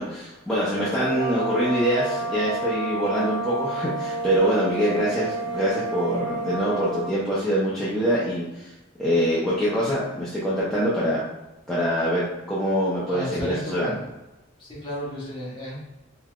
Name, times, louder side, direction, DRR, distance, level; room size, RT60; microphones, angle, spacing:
voice 1, 0.0-8.7 9.0-11.2 11.7-14.0, equal, 5° left, -10 dB, 0.6 m, -24 dB
sound 1, 0.6-7.2, right 2 dB, 55° right, 1.2 m, -30 dB
voice 2, 13.1-14.0 14.6-15.8, equal, 25° left, -7 dB, 1.2 m, -33 dB
3.8 x 3.0 x 2.4 m, 1.0 s
head